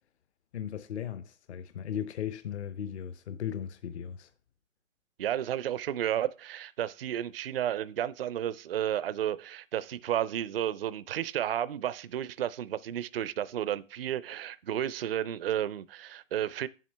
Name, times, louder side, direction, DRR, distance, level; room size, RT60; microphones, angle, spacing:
voice 1, 0.5-4.3, left 9 dB, 55° left, 0.8 m, -37 dB
voice 2, 5.2-16.7, right 11 dB, 45° right, 0.4 m, -32 dB
9.4 x 7.6 x 3.2 m
hypercardioid pair, 150°, 41 cm